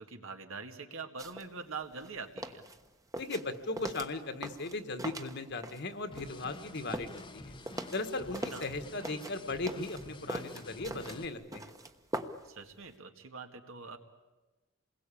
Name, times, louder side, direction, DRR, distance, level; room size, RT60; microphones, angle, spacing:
voice 1, 0.0-2.6 8.5-8.6 12.4-14.0, right 4 dB, 80° right, 5 dB, 2.0 m, -44 dB
sound 1, 1.2-1.5 1.8-5.9 6.2-8.8 9.0-12.6 12.8-12.9, right 1 dB, 15° right, 1.1 m, -41 dB
voice 2, 3.2-7.5 7.9-11.7, left 2 dB, 55° left, 8 dB, 1.7 m, -37 dB
sound 2, 6.1-11.3, left 2 dB, 25° left, 0.9 m, -49 dB
28.0 x 21.0 x 8.6 m, 1.2 s
head